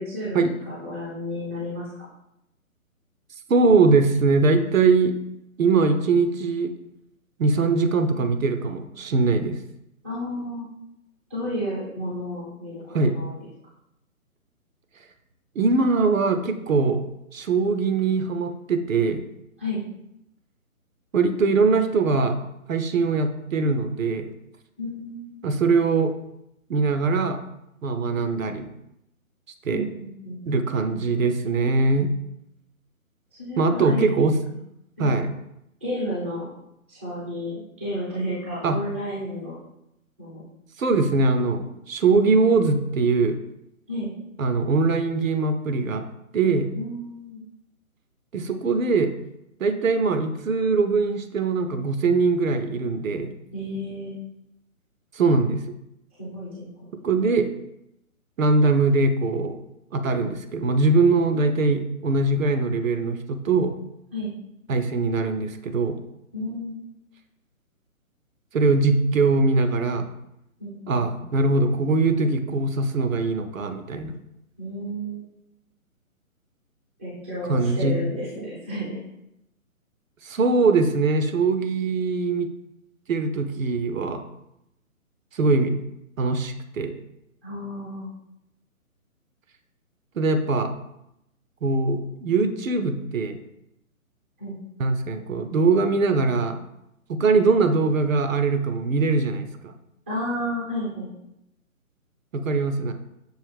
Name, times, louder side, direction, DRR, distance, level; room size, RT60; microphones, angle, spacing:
voice 1, 0.0-0.4 0.7-1.9 10.0-10.7 11.3-13.4 19.6-19.8 24.8-25.3 29.7-30.4 33.4-34.2 35.0-35.2 35.8-36.5 36.9-39.6 40.2-40.4 43.9-44.1 46.7-47.4 53.5-54.1 56.2-56.9 64.1-64.3 66.3-66.8 70.6-71.3 74.6-75.2 77.0-79.0 87.4-88.1 94.4-94.6 100.1-101.1, equal, 10° right, -9 dB, 0.4 m, -32 dB
voice 2, 3.5-5.2 5.6-6.7 7.4-9.6 12.9-13.2 15.6-17.0 17.3-19.2 21.1-22.4 22.7-24.3 25.4-26.1 26.7-27.4 27.8-28.7 29.7-29.9 30.5-32.1 33.6-34.4 35.0-35.3 38.6-38.8 40.8-43.4 44.4-46.0 46.3-46.7 48.3-49.1 49.6-53.3 55.1-55.6 57.0-57.5 58.4-59.6 59.9-63.7 64.7-66.0 68.5-70.1 70.9-74.2 77.5-78.0 80.2-82.5 83.1-84.2 85.3-85.8 86.2-86.9 90.2-90.7 91.6-93.4 94.8-96.6 97.1-99.7 102.3-102.9, right 3 dB, 70° right, 7 dB, 0.6 m, -22 dB
6.3 x 2.5 x 3.3 m, 0.83 s
figure-of-eight pair, 140°, 42 cm